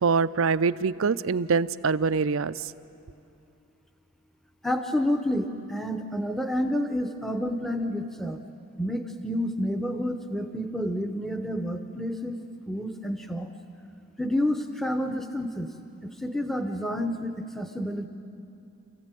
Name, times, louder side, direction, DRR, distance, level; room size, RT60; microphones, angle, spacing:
voice 1, 0.0-2.6, right 5 dB, 75° right, 15 dB, 0.5 m, -24 dB
voice 2, 4.6-8.4 8.8-12.4 12.7-13.5 14.2-15.7 16.0-18.1, equal, ahead, 6 dB, 0.8 m, -29 dB
28.0 x 15.0 x 9.1 m, 2.6 s
head